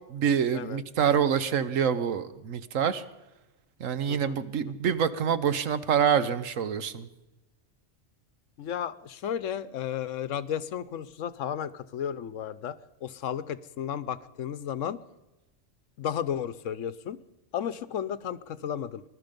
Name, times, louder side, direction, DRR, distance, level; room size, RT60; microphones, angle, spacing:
voice 1, 0.1-3.0 3.8-7.1, right 7 dB, 85° right, 13 dB, 1.3 m, -26 dB
voice 2, 4.1-4.4 8.6-15.0 16.0-17.2 17.5-19.0, left 9 dB, 80° left, 16 dB, 1.1 m, -33 dB
21.0 x 12.0 x 5.2 m, 1.0 s
omnidirectional pair, 1.3 m